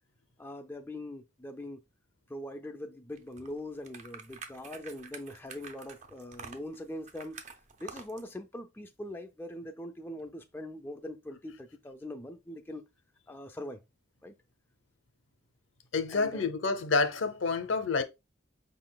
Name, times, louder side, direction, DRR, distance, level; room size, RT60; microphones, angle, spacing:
voice 1, 0.4-1.8 2.3-7.4 7.8-12.9 13.3-13.8 14.2-14.3 16.1-16.4, left 1 dB, 10° left, 0.3 m, -42 dB
sound 1, 3.2-8.3, right 5 dB, 35° right, 0.5 m, -48 dB
voice 2, 15.9-18.0, left 4 dB, 75° left, 0.7 m, -28 dB
5.3 x 3.8 x 2.2 m
head